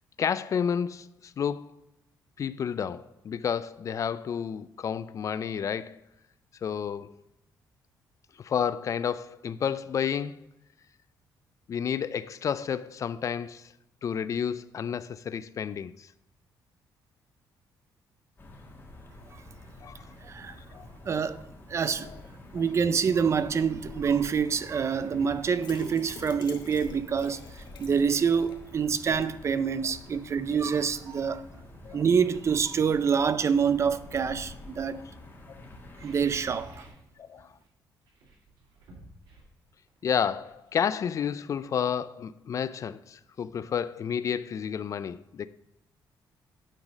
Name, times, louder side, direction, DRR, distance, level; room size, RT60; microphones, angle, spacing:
voice 1, 0.2-1.8 2.4-6.0 6.6-7.1 8.4-10.4 11.7-13.7 14.0-16.1 19.8-20.0 20.7-20.9 31.8-32.0 37.2-37.5 40.0-45.5, left 7 dB, 45° left, 0.3 m, -31 dB
sound 1, 18.4-36.9, left 2 dB, 30° left, 1.5 m, -48 dB
voice 2, 20.2-20.6 21.0-22.1 22.5-31.5 31.9-35.0 36.0-36.9, right 6 dB, 40° right, 0.4 m, -26 dB
sound 2, 25.1-25.3 25.7-25.9 27.8-27.9 28.3-30.0 31.0-31.2 31.7-33.1 33.7-34.5 35.8-37.1 37.3-37.7 38.0-41.6 41.9-42.0, right 2 dB, 85° right, 2.3 m, -53 dB
sound 3, 25.6-28.7 29.0-29.1 29.5-29.6, left 4 dB, 70° left, 1.1 m, -45 dB
8.9 x 4.0 x 5.2 m
cardioid pair, 115°, 8 cm